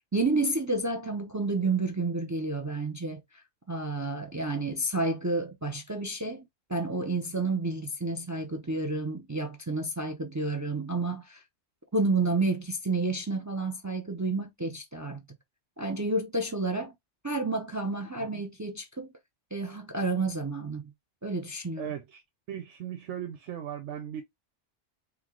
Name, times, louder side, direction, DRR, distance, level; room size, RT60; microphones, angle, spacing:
voice 1, 0.1-6.4 6.7-11.4 11.9-15.2 15.8-16.9 17.2-19.1 19.5-20.8 21.2-21.9, right 3 dB, 30° right, 0.3 m, -30 dB
voice 2, 21.8-22.2 22.5-24.2, right 10 dB, 90° right, 1.0 m, -37 dB
4.6 x 2.1 x 3.7 m
omnidirectional pair, 1.2 m